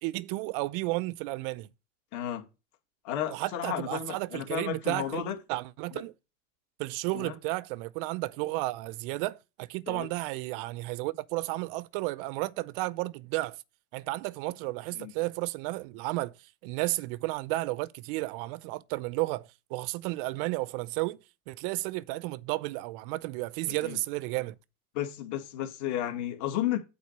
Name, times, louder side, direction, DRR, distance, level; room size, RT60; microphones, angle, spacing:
voice 1, 0.0-1.7 3.3-5.2 5.5-6.1 6.8-13.6 13.9-16.3 16.6-21.2 21.5-24.6, right 20 dB, 40° right, 0.6 m, -33 dB
voice 2, 2.1-2.4 3.0-5.3 7.1-7.3 9.9-10.1 15.0-15.1 23.7-24.0 24.9-26.8, left 11 dB, 45° left, 2.3 m, -33 dB
8.6 x 4.2 x 6.7 m
supercardioid pair, 135°, 42 cm